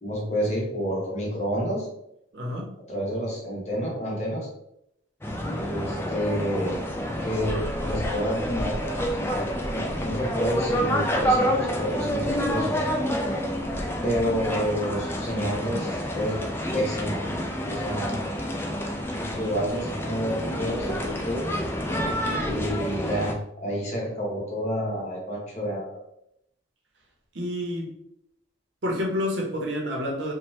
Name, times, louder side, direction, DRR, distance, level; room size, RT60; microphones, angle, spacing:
voice 1, 0.0-1.9 2.9-4.5 5.5-6.8 7.2-9.1 9.7-12.9 14.0-16.4 16.7-17.2 17.6-18.3 19.2-21.4 22.4-25.9, equal, 35° left, -3 dB, 0.8 m, -29 dB
voice 2, 2.3-2.7 27.3-27.9 28.8-30.3, left 1 dB, 65° right, -1 dB, 0.7 m, -29 dB
sound 1, 5.2-23.3, equal, 10° left, 0.3 m, -28 dB
2.9 x 2.2 x 3.0 m, 0.78 s
head